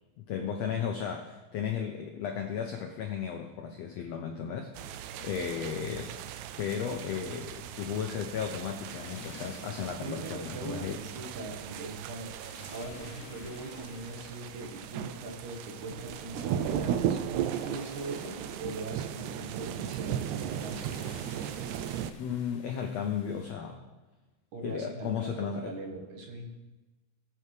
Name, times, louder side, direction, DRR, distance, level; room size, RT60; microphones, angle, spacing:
voice 1, 0.2-6.2 6.6-11.0 22.2-23.8 24.6-25.7, left 7 dB, 85° left, 3 dB, 1.5 m, -35 dB
sound 1, 4.7-22.1, right 9 dB, 90° right, 1.6 m, -37 dB
sound 2, 8.4-23.5, left 4 dB, 65° left, 2.7 m, -53 dB
voice 2, 9.9-21.2 24.5-26.5, right 2 dB, 65° right, 1 dB, 2.8 m, -41 dB
19.5 x 7.0 x 3.3 m, 1.1 s
omnidirectional pair, 3.9 m